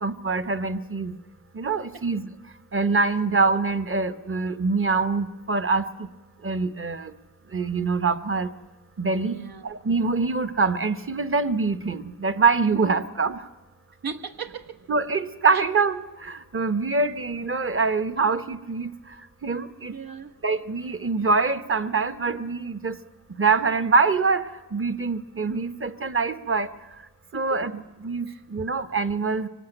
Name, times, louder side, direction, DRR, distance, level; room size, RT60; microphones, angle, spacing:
voice 1, 0.0-1.2 1.5-2.3 2.7-6.1 6.4-7.1 7.5-8.5 9.0-9.4 9.6-13.5 14.9-18.9 19.4-19.9 20.4-23.0 23.4-26.7 27.3-29.5, right 4 dB, 35° right, 13 dB, 1.0 m, -24 dB
voice 2, 9.2-9.6 14.0-14.8 19.9-20.4 27.3-27.6 28.3-28.4, right 6 dB, 80° right, 5 dB, 1.4 m, -36 dB
24.5 x 18.5 x 9.0 m, 1.2 s
wide cardioid pair, 130°, 36 cm